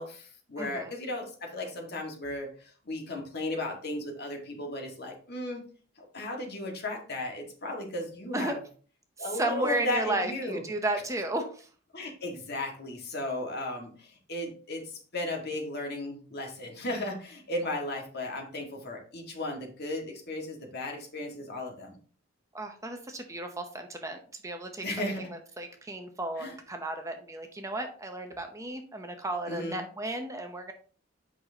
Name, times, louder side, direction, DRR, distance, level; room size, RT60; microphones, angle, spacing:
voice 1, 0.0-5.6 6.0-8.6 9.2-10.6 11.9-22.0 24.8-25.3 26.4-26.5 29.5-29.8, left 1 dB, 50° left, 1 dB, 1.8 m, -35 dB
voice 2, 0.6-0.9 8.3-8.6 9.2-11.7 22.5-30.7, right 2 dB, 15° right, 5 dB, 0.7 m, -34 dB
8.3 x 5.8 x 2.8 m, 0.42 s
head